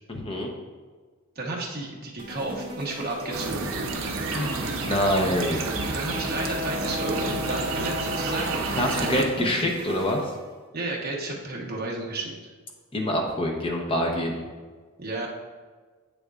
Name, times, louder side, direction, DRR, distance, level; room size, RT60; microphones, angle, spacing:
voice 1, 0.1-0.5 4.2-5.7 8.8-10.3 12.9-14.4, left 1 dB, 25° left, 1 dB, 0.8 m, -26 dB
voice 2, 1.3-3.7 5.8-9.5 10.7-12.3 15.0-15.3, right 2 dB, 45° right, -2 dB, 1.1 m, -32 dB
sound 1, 2.2-10.5, equal, 25° right, 0.8 m, -39 dB
sound 2, 3.3-9.2, right 2 dB, 60° right, 0.6 m, -30 dB
7.7 x 6.6 x 2.5 m, 1.4 s
head